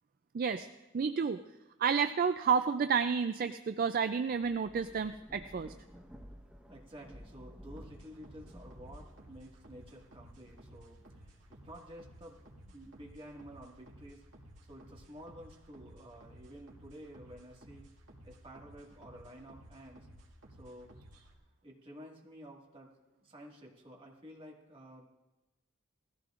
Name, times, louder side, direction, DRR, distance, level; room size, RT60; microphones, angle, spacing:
voice 1, 0.3-0.7 0.9-1.4 1.8-5.7, right 6 dB, 45° right, 10 dB, 0.4 m, -30 dB
Thunder / Rain, 4.2-12.9 13.4-14.8, equal, 5° right, 1.0 m, -55 dB
voice 2, 6.7-14.2 14.7-17.9 18.2-20.1 20.6-20.9 21.6-25.1, equal, 25° right, -1 dB, 1.8 m, -52 dB
sound 1, 7.8-21.4, right 1 dB, 70° right, 2.1 m, -56 dB
19.0 x 14.5 x 2.5 m, 1.1 s
head